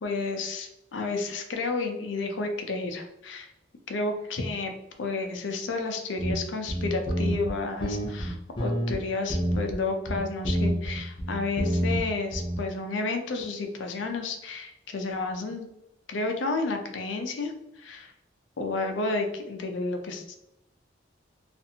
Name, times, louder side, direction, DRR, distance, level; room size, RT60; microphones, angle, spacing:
voice 1, 0.0-3.5 3.9-4.7 5.0-15.7 16.1-18.1 18.6-20.4, left 3 dB, 80° left, 4 dB, 0.5 m, -31 dB
sound 1, 6.2-6.4 6.7-7.5 7.8-9.0 9.3-9.8 10.1-12.0 12.3-12.6, equal, 25° left, 0.6 m, -27 dB
2.5 x 2.4 x 2.7 m, 0.86 s
head